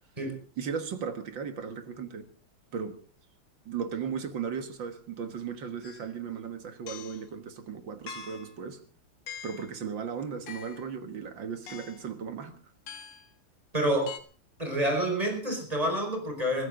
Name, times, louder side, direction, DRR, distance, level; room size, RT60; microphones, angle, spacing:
voice 1, 0.6-2.3 2.7-3.0 3.7-8.8 9.4-12.6, right 6 dB, 60° right, 2.2 m, -36 dB
sound 1, 5.8-6.1 6.9-7.3 8.1-8.6 9.3-9.7 10.5-10.9 11.7-12.1 12.9-13.3 14.1-14.2, left 7 dB, 85° left, 2.4 m, -43 dB
voice 2, 13.7-14.1 14.6-16.7, right 1 dB, 15° right, 5.1 m, -28 dB
22.5 x 15.5 x 3.8 m
omnidirectional pair, 2.3 m